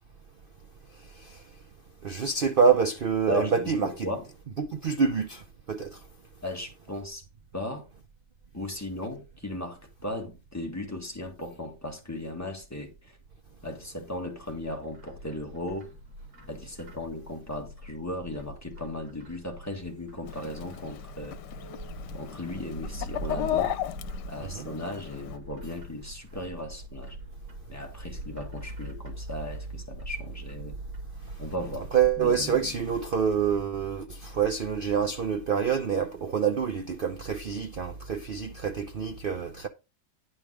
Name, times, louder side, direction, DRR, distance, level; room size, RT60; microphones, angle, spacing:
voice 1, 2.0-3.9 4.6-5.4 5.7-6.0 24.4-24.7 31.9-39.7, right 6 dB, 75° right, 0.4 m, -26 dB
voice 2, 3.3-4.3 6.4-7.2 7.5-7.9 8.5-13.2 13.6-15.9 16.5-21.4 22.1-23.8 24.3-27.2 27.7-30.8 31.4-31.9 32.2-32.8, left 1 dB, 10° left, 1.7 m, -36 dB
Bird, 14.5-32.2, equal, 60° right, 2.3 m, -44 dB
Chicken rooster, 20.2-25.4, left 12 dB, 90° left, 1.3 m, -35 dB
9.8 x 5.2 x 4.9 m
omnidirectional pair, 1.8 m